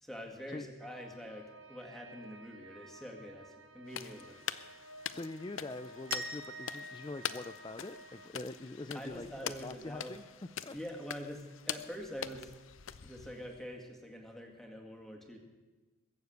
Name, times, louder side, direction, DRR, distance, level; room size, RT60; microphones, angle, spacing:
voice 1, 0.0-4.4 8.9-10.2 10.7-12.5 13.0-15.4, equal, ahead, 2 dB, 1.9 m, -45 dB
sound 1, 0.8-8.3, right 1 dB, 75° right, 1.4 m, -54 dB
sound 2, 3.9-13.6, left 9 dB, 70° left, 0.6 m, -44 dB
voice 2, 5.1-10.3 10.6-10.8, left 2 dB, 20° left, 9 dB, 0.4 m, -44 dB
sound 3, 6.1-8.9, right 2 dB, 45° right, 1.2 m, -46 dB
22.0 x 7.3 x 8.0 m, 1.2 s
head